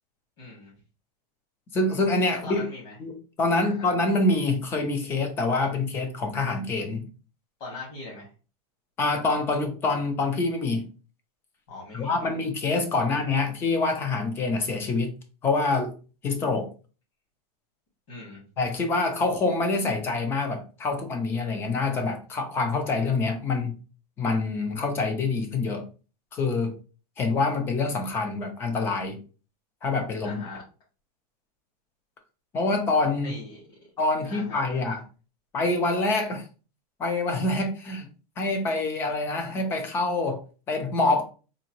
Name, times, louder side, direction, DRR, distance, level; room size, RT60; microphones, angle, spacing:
voice 1, 0.4-0.7 2.4-2.9 3.6-3.9 7.6-8.3 11.7-12.3 13.0-13.2 18.1-18.4 30.2-30.6 33.2-33.6 34.2-34.9, left 3 dB, 45° left, 1.7 m, -41 dB
voice 2, 1.7-2.7 3.0-7.1 9.0-10.9 11.9-15.1 15.4-15.9 16.2-16.7 18.6-23.7 24.2-25.9 26.3-26.7 27.2-29.2 29.8-30.4 32.5-33.3 34.0-35.0 35.5-36.5 37.0-38.1 38.4-41.2, left 3 dB, 10° left, 0.3 m, -26 dB
3.8 x 2.5 x 2.8 m
supercardioid pair, 175°, 21 cm